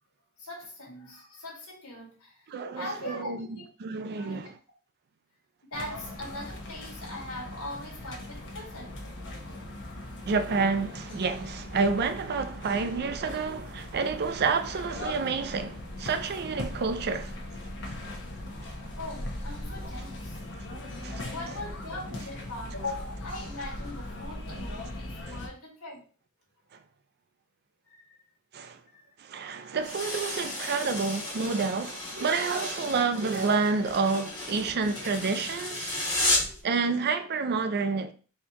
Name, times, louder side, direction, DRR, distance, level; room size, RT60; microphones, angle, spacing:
voice 1, 0.4-2.5 2.7-3.7 4.1-4.4 5.7-8.9 18.3-18.4 19.0-20.4 21.2-26.0 27.9-28.1 28.9-29.0 29.5-29.8 36.4-36.7, left 1 dB, 75° left, 1.7 m, -41 dB
voice 2, 2.5-4.5 10.3-17.3 20.5-20.7 21.0-21.3 25.3-25.4 28.5-28.8 29.2-35.9 36.3-38.1, right 4 dB, 50° right, 0.5 m, -29 dB
sound 1, 5.7-25.5, left 1 dB, 60° left, 1.0 m, -39 dB
sound 2, 29.8-36.6, left 2 dB, 20° left, 1.5 m, -33 dB
4.3 x 2.9 x 3.5 m
head